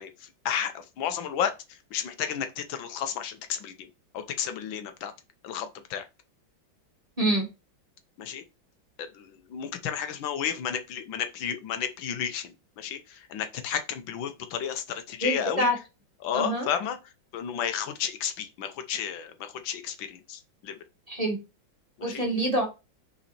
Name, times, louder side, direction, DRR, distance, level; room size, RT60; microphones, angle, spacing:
voice 1, 0.0-1.5 1.9-3.9 4.1-5.1 5.4-6.0 8.2-8.4 9.0-15.7 16.2-17.0 17.3-20.8 22.0-22.2, left 8 dB, 85° left, 1.6 m, -32 dB
voice 2, 15.2-15.7 16.3-16.7 21.1-21.4 22.0-22.7, right 1 dB, 20° right, 1.2 m, -26 dB
5.7 x 4.2 x 4.2 m
omnidirectional pair, 2.1 m